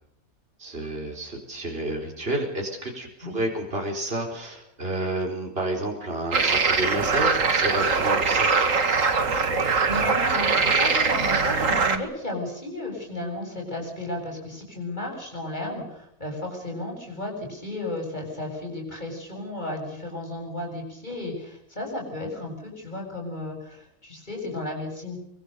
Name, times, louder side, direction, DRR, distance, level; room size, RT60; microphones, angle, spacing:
voice 1, 0.6-8.5, right 1 dB, 40° right, 1 dB, 4.7 m, -30 dB
sound 1, 6.3-12.0, right 4 dB, 60° right, 2.2 m, -22 dB
voice 2, 9.4-25.2, left 1 dB, 30° left, 1 dB, 7.8 m, -34 dB
24.0 x 24.0 x 6.8 m, 0.74 s
omnidirectional pair, 1.5 m